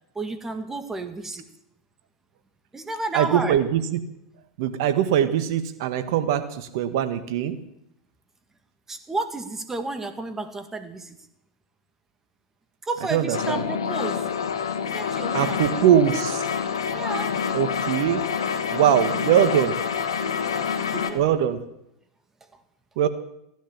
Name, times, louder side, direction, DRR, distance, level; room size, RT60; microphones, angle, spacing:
voice 1, 0.2-1.5 2.7-3.6 8.9-11.2 12.8-14.3 14.9-15.9 16.9-17.4 20.9-21.6 22.5-22.6, right 2 dB, 15° right, 8 dB, 2.1 m, -32 dB
voice 2, 3.1-4.0 4.6-7.6 13.1-13.6 15.3-16.4 17.5-18.2 18.7-19.7 21.1-21.6 23.0-23.1, right 10 dB, 65° right, 11 dB, 1.6 m, -22 dB
sound 1, 13.3-21.1, left 7 dB, 85° left, 1.7 m, -27 dB
15.5 x 11.5 x 7.4 m, 0.82 s
hypercardioid pair, 95°, 2 cm